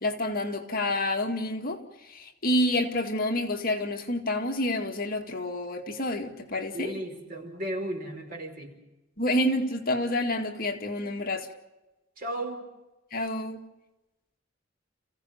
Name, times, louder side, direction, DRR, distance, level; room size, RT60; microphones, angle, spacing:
voice 1, 0.0-1.8 2.1-7.0 9.2-11.5 13.1-13.6, left 1 dB, 45° left, 2.0 m, -28 dB
voice 2, 6.7-8.7 12.2-12.7, right 1 dB, 45° right, 4.7 m, -35 dB
30.0 x 16.0 x 7.0 m
head